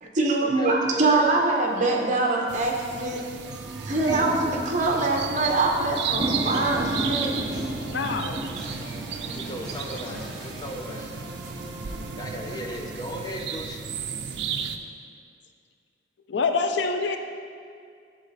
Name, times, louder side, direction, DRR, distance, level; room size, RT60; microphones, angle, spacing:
voice 1, 0.0-3.2 3.8-7.3, right 2 dB, 45° right, 0 dB, 0.9 m, -24 dB
voice 2, 0.6-1.2 6.4-6.5 9.3-11.1 12.2-13.8, equal, 25° left, 1 dB, 0.7 m, -37 dB
sound 1, 1.1-1.2 2.0-2.2 2.6-2.7 3.0-12.7, right 1 dB, 25° right, 0.6 m, -34 dB
sound 2, 2.5-14.8, right 7 dB, 75° right, 0.4 m, -34 dB
sound 3, 6.5-13.5, equal, 5° left, 1.2 m, -42 dB
voice 3, 7.9-8.4 16.3-17.2, left 4 dB, 80° left, 6 dB, 0.5 m, -26 dB
11.0 x 4.1 x 4.1 m, 2.3 s
head